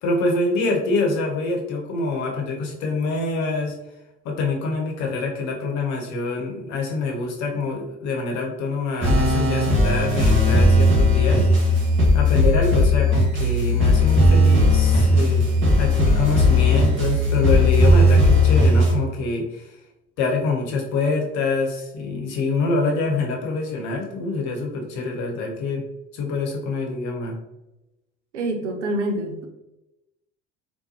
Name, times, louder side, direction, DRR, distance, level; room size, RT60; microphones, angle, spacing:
voice 1, 0.0-3.8 4.2-11.5 12.1-15.5 15.7-19.8 20.2-25.8 26.1-27.4, left 3 dB, 55° left, 1 dB, 1.0 m, -25 dB
sound 1, 9.0-18.9, left 1 dB, 35° right, 1.3 m, -17 dB
voice 2, 28.3-29.5, right 1 dB, 85° right, 5 dB, 0.5 m, -26 dB
3.7 x 2.2 x 2.8 m, 0.93 s
figure-of-eight pair, 60°, 35 cm